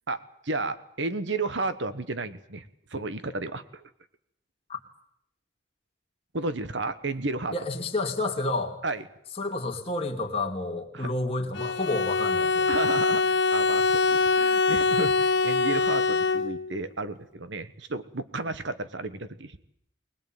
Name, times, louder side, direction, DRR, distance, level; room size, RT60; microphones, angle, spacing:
voice 1, 0.1-3.8 6.3-7.5 8.8-9.0 10.9-11.1 12.7-19.6, right 3 dB, 70° right, 12 dB, 1.3 m, -32 dB
voice 2, 7.5-8.8 9.4-12.7, left 2 dB, 30° left, 2 dB, 2.8 m, -30 dB
Bowed string instrument, 11.5-16.8, left 4 dB, 65° left, 1.1 m, -24 dB
21.0 x 20.0 x 9.3 m, 0.71 s
head